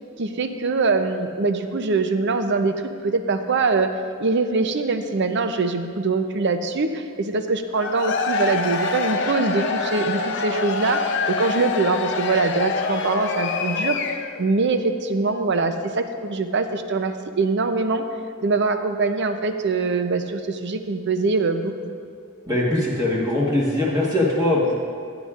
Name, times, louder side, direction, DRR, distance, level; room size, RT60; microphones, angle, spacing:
voice 1, 0.2-2.8 3.0-14.0 14.4-18.0 18.4-21.7, right 3 dB, 55° right, 8 dB, 0.6 m, -23 dB
Cheering / Crowd, 7.7-14.4, left 4 dB, 55° left, 0.6 m, -26 dB
voice 2, 22.5-24.7, left 1 dB, 20° right, -5 dB, 1.4 m, -21 dB
14.5 x 9.7 x 2.5 m, 2.3 s
head